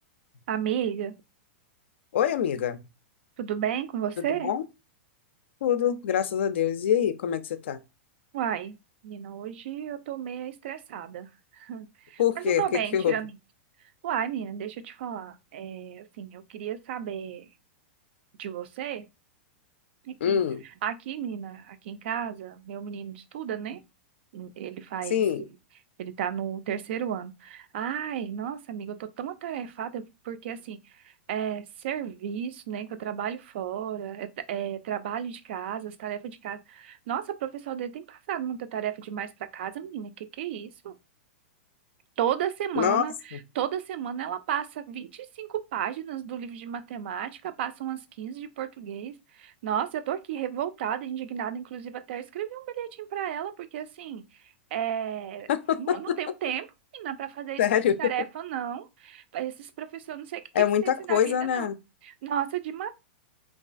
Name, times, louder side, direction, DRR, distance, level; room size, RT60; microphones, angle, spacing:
voice 1, 0.5-1.2 3.4-4.5 8.3-8.8 9.0-11.3 11.5-12.2 12.6-13.3 14.0-17.5 18.4-19.1 20.1-20.4 20.8-23.8 24.3-25.2 26.0-30.8 31.3-41.0 42.2-43.1 43.5-49.1 49.4-54.2 54.7-55.5 55.8-56.7 56.9-57.6 58.0-60.4 60.8-61.7 62.0-62.9, right 9 dB, 65° right, 0.3 m, -33 dB
voice 2, 2.1-2.8 4.3-4.6 5.6-7.8 12.2-13.1 20.2-20.6 25.1-25.5 42.8-43.0 43.3-43.4 55.5-56.2 57.6-58.1 60.5-61.8, left 9 dB, 75° left, 0.3 m, -25 dB
2.3 x 2.3 x 2.4 m
hypercardioid pair, 120°, 6 cm